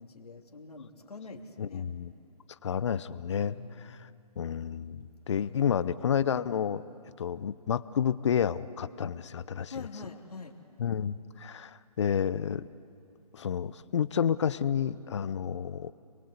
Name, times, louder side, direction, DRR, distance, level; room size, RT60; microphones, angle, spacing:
voice 1, 0.0-1.8 3.4-4.2 5.4-5.6 9.6-10.5, left 4 dB, 70° left, 2 dB, 3.3 m, -45 dB
voice 2, 1.6-2.1 2.6-4.1 4.4-6.8 7.2-9.9 10.8-12.7 13.3-15.9, left 8 dB, 45° left, 15 dB, 0.8 m, -30 dB
29.5 x 22.5 x 8.3 m, 2.5 s
hypercardioid pair, 150°, 20 cm